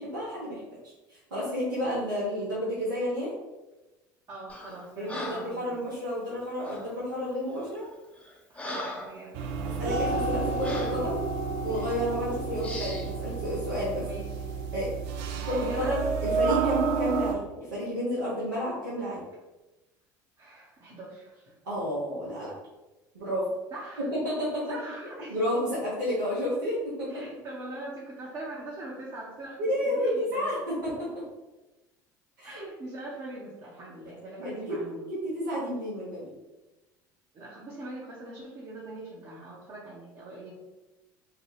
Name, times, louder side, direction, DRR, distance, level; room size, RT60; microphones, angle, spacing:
voice 1, 0.0-3.3 5.0-7.9 9.8-11.2 11.6-14.0 14.7-14.9 15.5-19.2 21.6-22.5 23.1-23.5 24.1-24.6 25.1-27.2 29.6-31.2 32.4-32.6 34.4-34.8 35.1-36.3, equal, 90° right, -8 dB, 0.8 m, -31 dB
voice 2, 4.3-5.8 8.5-11.1 14.0-14.4 15.3-16.0 20.4-21.6 23.7-24.1 24.7-25.4 27.1-30.6 32.4-35.1 37.3-40.5, right 2 dB, 45° right, -5 dB, 0.8 m, -42 dB
Breathing, 4.5-4.8 5.1-5.6 6.6-6.9 7.6-7.7 8.2-9.2 9.7-9.8 10.6-11.0 11.7-12.0 12.6-13.1, left 1 dB, 15° left, 0.7 m, -39 dB
sound 1, 9.3-17.4, right 4 dB, 65° right, 0.4 m, -30 dB
2.8 x 2.2 x 3.1 m, 1.1 s
hypercardioid pair, 75°, 10 cm